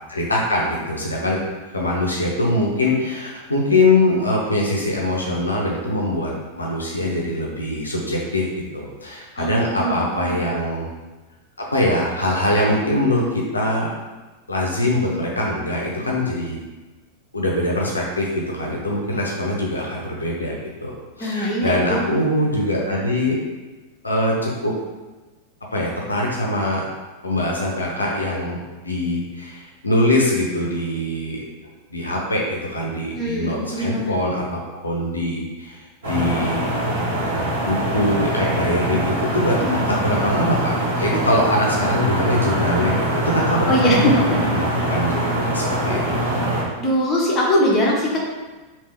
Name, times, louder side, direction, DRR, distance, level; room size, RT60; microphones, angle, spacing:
voice 1, 0.1-1.4 1.7-10.9 11.7-13.9 14.5-16.6 17.3-23.4 24.0-24.7 25.7-26.8 27.2-28.6 28.8-31.4 31.9-36.6 37.6-46.2, left 1 dB, 80° left, -2 dB, 0.6 m, -23 dB
voice 2, 9.4-10.4 21.2-22.0 33.1-34.1 43.7-44.4 46.8-48.2, equal, 25° left, -4 dB, 0.9 m, -21 dB
sound 1, 36.0-46.6, right 1 dB, 65° right, 1.5 m, -23 dB
3.3 x 2.7 x 3.3 m, 1.2 s
figure-of-eight pair, 90°, 0 cm